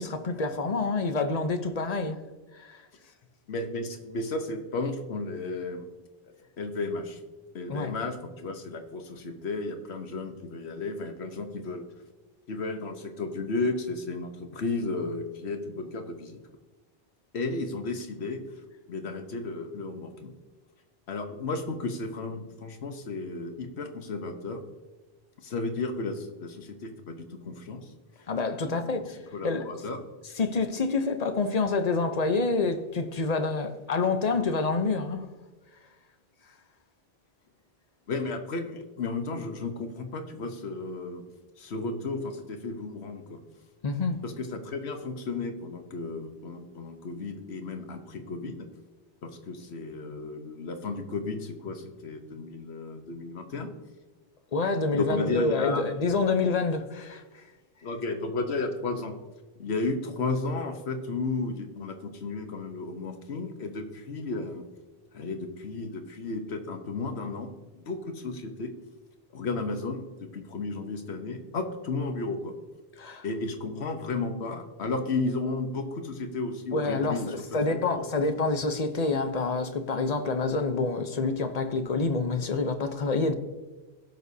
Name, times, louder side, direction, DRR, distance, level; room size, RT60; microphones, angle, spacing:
voice 1, 0.0-2.2 2.5-2.8 7.7-7.9 28.3-29.2 29.4-29.6 30.4-35.3 43.8-44.2 54.5-57.4 73.0-73.2 76.7-83.3, left 3 dB, 40° left, 0.8 m, -27 dB
voice 2, 3.5-5.9 6.6-7.2 7.5-11.9 12.5-16.4 17.3-18.4 18.9-20.3 21.1-24.6 25.4-27.9 28.6-29.0 29.3-30.0 38.1-41.2 41.6-43.4 44.2-48.7 49.2-53.7 54.9-55.9 57.8-59.2 59.6-64.7 65.1-67.5 67.8-68.7 69.3-72.5 73.2-78.0, left 3 dB, 85° left, 1.3 m, -33 dB
17.0 x 6.1 x 2.7 m
omnidirectional pair, 1.1 m